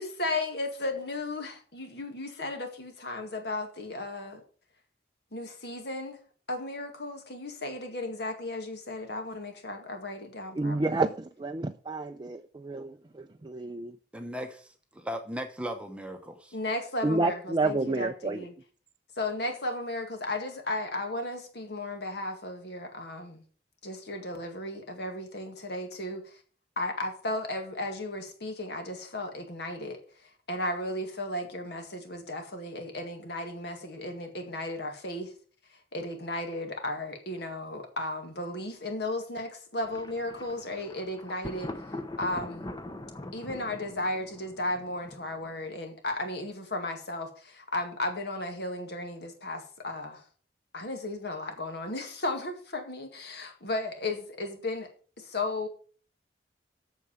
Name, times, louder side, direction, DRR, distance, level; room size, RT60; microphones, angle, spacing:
voice 1, 0.0-4.4 5.3-6.2 6.5-11.1 16.5-18.5 19.2-23.4 23.8-26.4 26.8-35.3 35.7-42.7 43.3-50.3 50.7-54.9 55.2-55.7, left 2 dB, 60° left, 2.1 m, -35 dB
voice 2, 10.6-14.0 17.0-18.4, right 3 dB, 25° right, 0.4 m, -30 dB
voice 3, 14.1-16.6, equal, 5° right, 0.9 m, -37 dB
Thunder, 39.8-45.6, left 2 dB, 20° left, 0.8 m, -42 dB
8.3 x 6.8 x 6.9 m
head